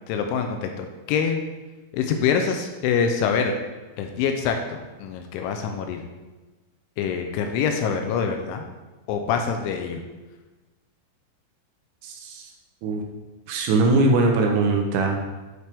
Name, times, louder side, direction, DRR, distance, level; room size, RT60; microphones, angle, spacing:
voice 1, 0.1-1.4 1.9-3.6 4.0-6.0 7.0-8.6 9.1-10.0, left 6 dB, 85° left, 4 dB, 2.9 m, -25 dB
voice 2, 12.0-12.4 12.8-13.0 13.5-15.2, right 3 dB, 80° right, 2 dB, 2.9 m, -21 dB
11.0 x 4.5 x 3.4 m, 1.2 s
omnidirectional pair, 5.7 m